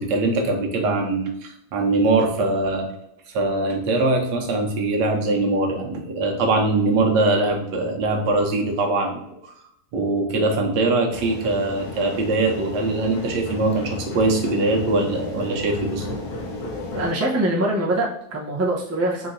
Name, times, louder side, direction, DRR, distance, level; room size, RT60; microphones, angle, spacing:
voice 1, 0.0-2.9 3.3-9.2 9.9-16.2, right 2 dB, 80° right, 2 dB, 1.4 m, -22 dB
sound 1, 11.1-17.1, left 2 dB, 55° left, 1.1 m, -33 dB
voice 2, 16.9-19.3, right 1 dB, 25° right, -4 dB, 0.3 m, -23 dB
4.3 x 3.8 x 2.6 m, 0.78 s
omnidirectional pair, 1.8 m